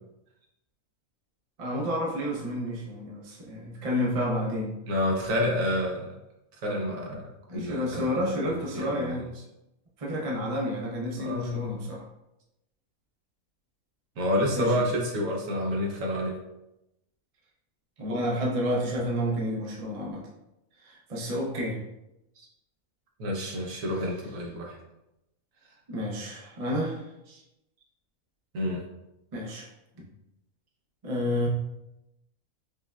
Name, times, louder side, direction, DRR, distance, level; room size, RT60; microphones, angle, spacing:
voice 1, 1.6-4.8 7.5-9.3 10.0-12.0 14.5-14.9 18.0-20.2 20.8-21.8 25.9-27.1 29.3-30.0 31.0-31.5, equal, 40° right, -3 dB, 0.5 m, -30 dB
voice 2, 4.9-6.1 6.6-9.2 11.2-11.8 14.2-16.3 22.4-22.5 23.2-24.8 27.3-27.4 28.5-28.8, equal, 70° right, -1 dB, 1.2 m, -29 dB
5.2 x 2.1 x 2.3 m, 0.89 s
omnidirectional pair, 1.5 m